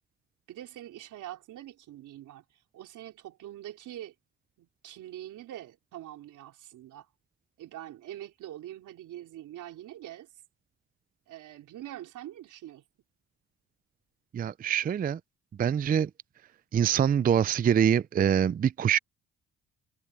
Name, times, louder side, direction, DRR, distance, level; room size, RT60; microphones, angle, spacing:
voice 1, 0.5-4.1 4.6-7.1 7.6-10.3 11.3-12.8, right 13 dB, 80° right, 4.1 m, -44 dB
voice 2, 14.3-15.2 15.6-16.1 16.7-19.0, right 8 dB, 30° right, 0.4 m, -24 dB
cardioid pair, 90°, 30 cm